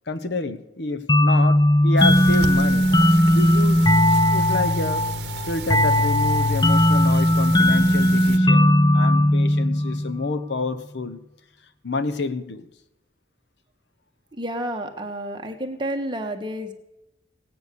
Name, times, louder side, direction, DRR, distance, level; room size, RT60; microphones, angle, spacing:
voice 1, 0.1-2.9 3.3-3.9 4.3-5.1 5.4-11.2 11.8-12.7, left 2 dB, 75° left, 12 dB, 1.0 m, -28 dB
sound 1, 1.1-10.4, left 1 dB, 25° left, 0.6 m, -18 dB
sound 2, 2.0-8.4, right 4 dB, 65° right, 1.1 m, -34 dB
voice 2, 14.3-16.7, right 1 dB, 25° right, 4 dB, 1.4 m, -30 dB
17.5 x 9.5 x 6.8 m, 0.87 s
head